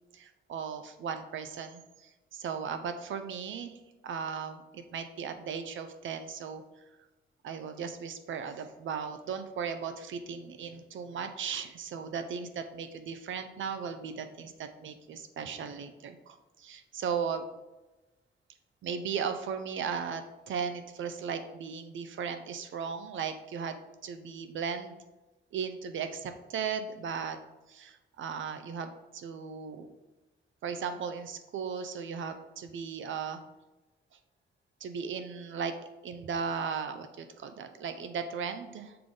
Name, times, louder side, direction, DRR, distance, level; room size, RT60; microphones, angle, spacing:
voice 1, 0.1-6.6 7.4-17.5 18.8-25.0 25.5-27.4 27.7-29.9 30.6-33.4 34.8-35.7 36.0-39.0, right 6 dB, 75° right, 8 dB, 0.6 m, -37 dB
6.7 x 3.7 x 3.8 m, 1.1 s
wide cardioid pair, 135°, 20 cm